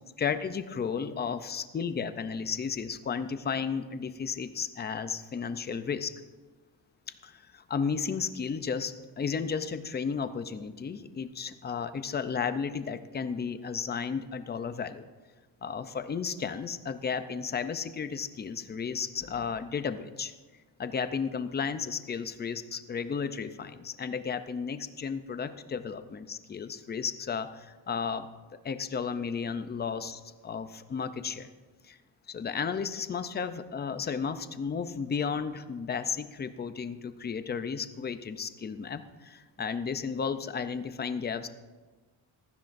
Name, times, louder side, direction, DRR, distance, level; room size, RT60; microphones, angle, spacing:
voice 1, 0.2-6.2 7.2-15.0 15.6-20.3 20.8-28.3 28.6-31.5 31.8-32.0 32.3-41.5, left 6 dB, 20° left, 11 dB, 0.4 m, -33 dB
19.0 x 14.5 x 2.6 m, 1.3 s
cardioid pair, 170°, 47 cm